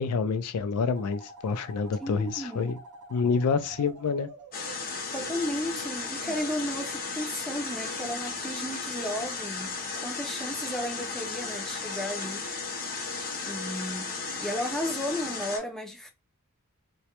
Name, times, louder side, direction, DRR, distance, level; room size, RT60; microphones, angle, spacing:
voice 1, 0.0-2.8 3.1-4.3, left 5 dB, 90° left, 0.4 m, -27 dB
sound 1, 1.0-6.4, right 3 dB, 80° right, 0.5 m, -48 dB
voice 2, 2.0-2.7 5.1-12.5 13.4-16.1, equal, ahead, 0.4 m, -34 dB
sound 2, 4.5-15.6, left 4 dB, 40° left, 0.6 m, -35 dB
2.2 x 2.0 x 2.8 m
head